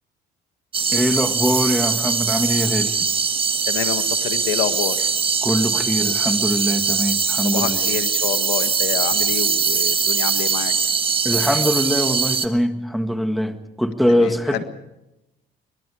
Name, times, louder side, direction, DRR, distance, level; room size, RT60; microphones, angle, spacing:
sound 1, 0.7-12.5, right 5 dB, 30° right, 1.5 m, -21 dB
voice 1, 0.9-3.1 5.4-7.9 11.2-14.6, equal, ahead, 1.8 m, -22 dB
voice 2, 3.7-5.1 7.4-10.7 14.2-14.6, left 12 dB, 90° left, 1.7 m, -28 dB
23.5 x 23.0 x 5.0 m
cardioid pair, 110°, 17 cm